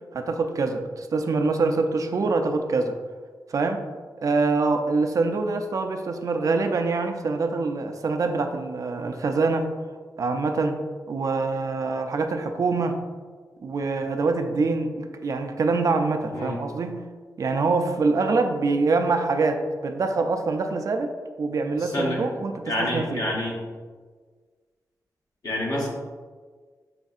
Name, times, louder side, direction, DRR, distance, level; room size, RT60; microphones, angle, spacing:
voice 1, 0.1-3.0 3.5-3.8 4.2-9.7 10.2-10.8 11.1-13.0 13.6-17.1 17.4-21.1 21.4-23.2, right 3 dB, 55° right, 6 dB, 0.4 m, -25 dB
voice 2, 21.8-22.2 22.6-23.6 25.4-25.9, left 1 dB, 65° left, -4 dB, 1.1 m, -27 dB
6.2 x 2.6 x 2.4 m, 1.5 s
wide cardioid pair, 95°, 7 cm